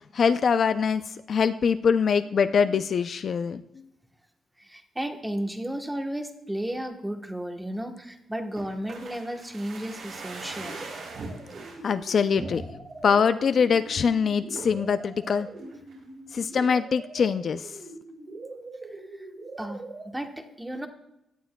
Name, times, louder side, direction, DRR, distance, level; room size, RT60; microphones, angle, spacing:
voice 1, 0.1-3.6 11.8-12.6 13.0-15.5 16.3-17.7, left 6 dB, 50° left, 11 dB, 0.4 m, -23 dB
voice 2, 4.6-10.8 18.9-19.3 19.6-20.9, right 1 dB, 5° right, 5 dB, 1.0 m, -34 dB
sound 1, 8.6-11.8 12.4-13.0 13.4-13.5 13.7-14.1 14.6-14.9 15.3-16.0 16.3-16.4, right 3 dB, 70° right, 4.4 m, -41 dB
sound 2, 10.5-20.1, right 2 dB, 40° right, 3.4 m, -43 dB
17.0 x 11.0 x 2.2 m, 0.87 s
wide cardioid pair, 145°, 0 cm